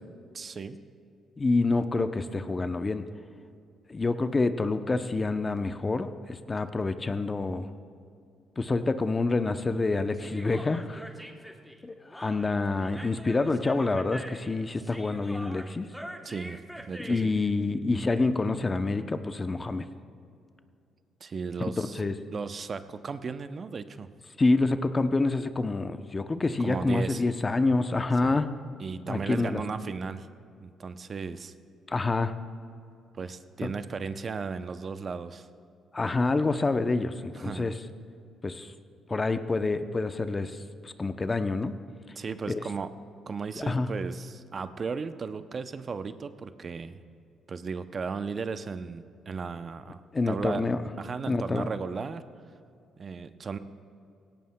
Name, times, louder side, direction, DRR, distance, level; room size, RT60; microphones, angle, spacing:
voice 1, 0.3-0.8 16.2-17.3 21.2-22.0 22.3-24.1 26.6-27.2 28.2-28.4 28.8-30.3 30.6-31.5 33.1-35.5 37.3-37.7 42.2-42.9 43.3-47.0 47.5-50.0 50.3-50.6 51.0-52.2 53.0-53.6, right 5 dB, 40° right, 11 dB, 0.5 m, -35 dB
voice 2, 1.4-3.1 3.9-7.7 8.6-11.0 11.8-15.9 17.0-19.9 21.8-22.1 24.4-28.5 29.1-29.6 31.9-32.3 33.6-33.7 35.9-37.1 37.4-37.7 38.4-38.7 39.1-40.6 40.8-41.7 42.5-42.6 43.6-43.9 50.1-50.8 51.3-51.7, left 3 dB, 25° left, 10 dB, 0.6 m, -27 dB
Human voice, 10.1-17.5, equal, ahead, 0.9 m, -44 dB
17.0 x 17.0 x 2.2 m, 2.4 s
cardioid pair, 90°, 0 cm